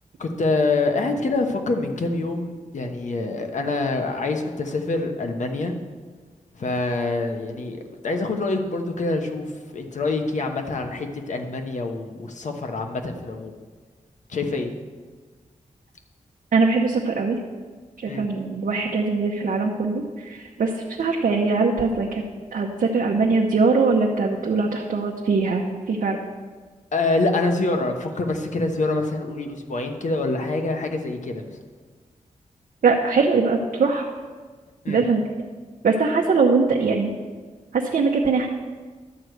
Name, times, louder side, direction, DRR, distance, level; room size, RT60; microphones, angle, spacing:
voice 1, 0.2-5.7 6.6-9.5 9.7-13.5 14.3-14.7 18.1-18.3 26.9-31.6 34.8-35.0, left 3 dB, 60° left, 4 dB, 1.1 m, -25 dB
voice 2, 16.5-17.4 18.0-20.7 21.0-22.2 22.5-26.2 32.8-34.1 34.9-35.2 35.8-37.1 37.7-38.5, right 4 dB, 75° right, 0 dB, 0.8 m, -21 dB
11.0 x 4.7 x 7.9 m, 1.5 s
wide cardioid pair, 150°, 14 cm